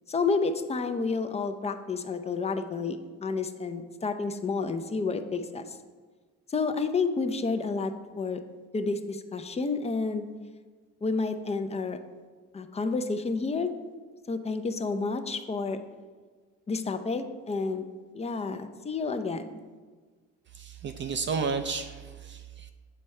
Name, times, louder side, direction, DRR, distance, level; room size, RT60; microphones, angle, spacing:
voice 1, 0.1-5.8 6.5-8.4 8.7-10.3 11.0-12.0 12.5-13.7 14.3-15.8 16.7-17.9 18.1-19.6, left 4 dB, 20° left, 8 dB, 0.5 m, -30 dB
voice 2, 20.5-22.7, right 5 dB, 40° right, 8 dB, 0.4 m, -32 dB
7.6 x 4.5 x 3.2 m, 1.5 s
supercardioid pair, 80°, 30 cm